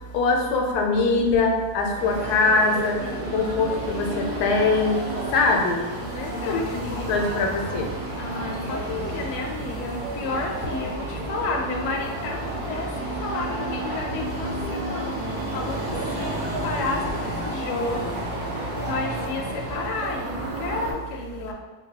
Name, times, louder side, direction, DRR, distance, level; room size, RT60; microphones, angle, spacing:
voice 1, 0.1-3.0 3.3-5.0 5.3-5.8 6.3-8.0, left 3 dB, 85° left, 1 dB, 1.1 m, -22 dB
sound 1, 1.9-20.9, right 1 dB, 75° right, 1.2 m, -31 dB
voice 2, 6.1-6.8 8.2-12.4 12.7-12.9 13.2-15.8 16.2-16.3 16.6-18.0 18.8-19.4 19.7-21.5, left 2 dB, 65° left, 0 dB, 0.8 m, -31 dB
4.5 x 2.2 x 2.8 m, 1.4 s
omnidirectional pair, 1.7 m